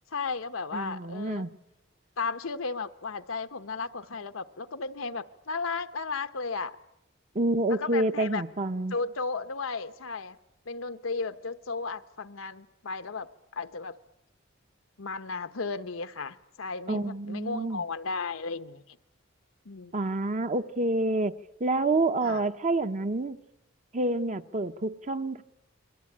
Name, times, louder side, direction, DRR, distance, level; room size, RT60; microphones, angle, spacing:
voice 1, 0.1-1.5 2.2-6.8 7.7-8.4 8.9-10.4 10.7-14.0 15.0-19.0 19.6-19.9 22.2-22.4, left 4 dB, 85° left, 1.1 m, -34 dB
voice 2, 0.7-1.5 7.3-8.9 16.9-17.8 19.9-23.4 23.9-25.4, right 2 dB, 35° right, 0.9 m, -28 dB
28.0 x 22.5 x 8.7 m
head